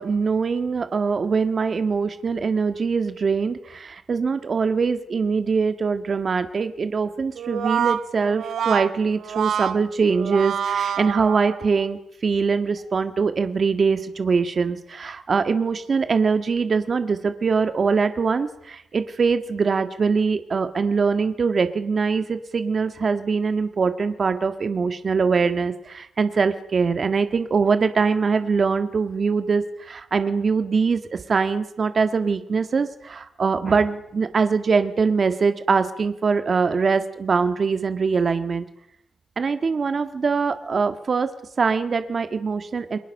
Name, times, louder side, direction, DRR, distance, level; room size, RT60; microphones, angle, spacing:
voice 1, 0.0-38.7 39.4-43.0, right 5 dB, 35° right, 9 dB, 1.7 m, -23 dB
Brass instrument, 7.4-11.9, right 8 dB, 75° right, 1.4 m, -27 dB
29.5 x 22.5 x 6.6 m, 0.81 s
wide cardioid pair, 155°, 0 cm